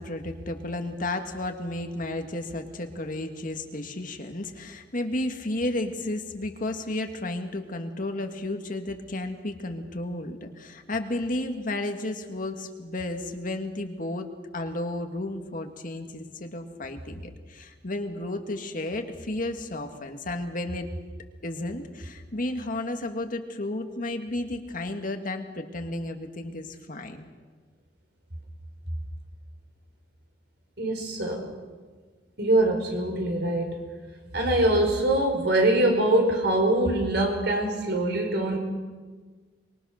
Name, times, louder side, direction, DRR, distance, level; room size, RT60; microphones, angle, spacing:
voice 1, 0.0-14.3 14.5-20.9 21.4-27.3, left 1 dB, 50° left, 5 dB, 1.9 m, -32 dB
voice 2, 30.8-31.4 32.4-33.8 34.3-38.6, right 1 dB, 65° right, 2 dB, 5.2 m, -23 dB
25.0 x 22.5 x 6.5 m, 1.4 s
head